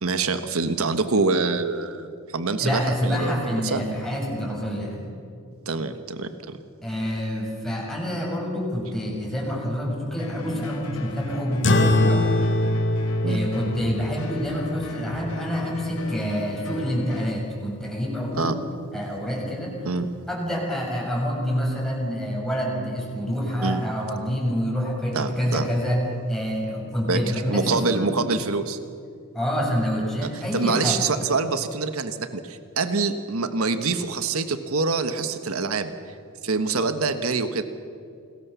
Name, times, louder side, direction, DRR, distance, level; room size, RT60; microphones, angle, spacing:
voice 1, 0.0-3.8 5.6-6.6 13.2-13.4 18.3-18.6 19.8-20.1 23.6-23.8 25.1-25.7 27.1-28.8 30.2-35.9 36.4-37.6, right 4 dB, 75° right, 9 dB, 1.4 m, -25 dB
voice 2, 2.6-5.0 6.8-12.4 13.2-18.6 18.9-19.9 20.3-28.2 29.3-31.0, equal, ahead, -3 dB, 7.0 m, -27 dB
sound 1, 10.2-17.3, left 1 dB, 90° left, 2.8 m, -38 dB
sound 2, 11.6-16.5, left 1 dB, 60° left, 2.0 m, -24 dB
28.5 x 20.5 x 7.0 m, 2.4 s
head